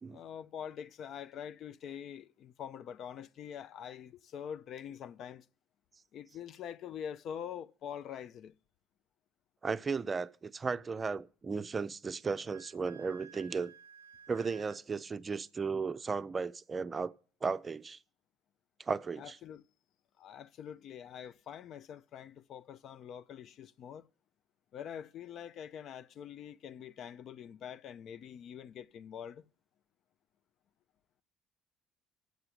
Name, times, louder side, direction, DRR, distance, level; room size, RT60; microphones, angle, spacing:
voice 1, 0.1-5.5 6.1-8.5 19.2-19.6 20.2-24.1 24.7-29.4, left 8 dB, 55° left, 0.5 m, -45 dB
voice 2, 9.6-13.7 14.3-17.1 17.4-18.0 18.8-19.4, right 5 dB, 30° right, 0.5 m, -35 dB
Wind instrument woodwind instrument, 12.2-14.8, right 7 dB, 85° right, 0.5 m, -55 dB
7.9 x 6.7 x 8.2 m
figure-of-eight pair, 55°, 0 cm